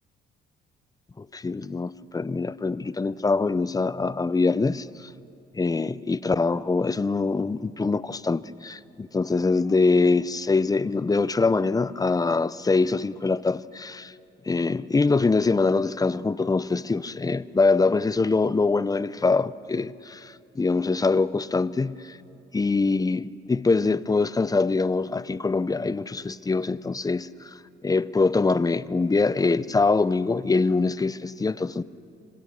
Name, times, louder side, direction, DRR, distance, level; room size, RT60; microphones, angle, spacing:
voice 1, 1.2-5.1 5.5-14.1 14.4-22.2 22.5-27.5 27.8-31.8, left 3 dB, 20° left, 0.6 m, -24 dB
27.0 x 26.0 x 6.5 m
cardioid pair, 90°, 20 cm